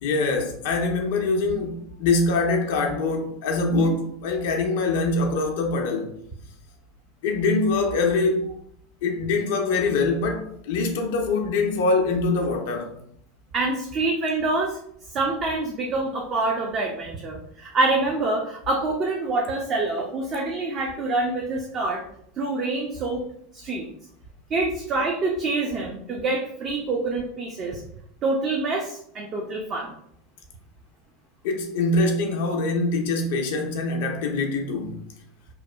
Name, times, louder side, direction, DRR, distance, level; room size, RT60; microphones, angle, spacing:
voice 1, 0.0-6.1 7.2-8.5 9.0-12.9 31.4-35.0, left 3 dB, 65° left, 0.4 m, -24 dB
voice 2, 13.5-14.8 15.1-22.0 22.4-23.2 23.5-23.9 24.5-27.8 28.2-29.9, right 2 dB, 40° right, 0.4 m, -26 dB
2.8 x 2.0 x 2.2 m
hypercardioid pair, 85°, 0 cm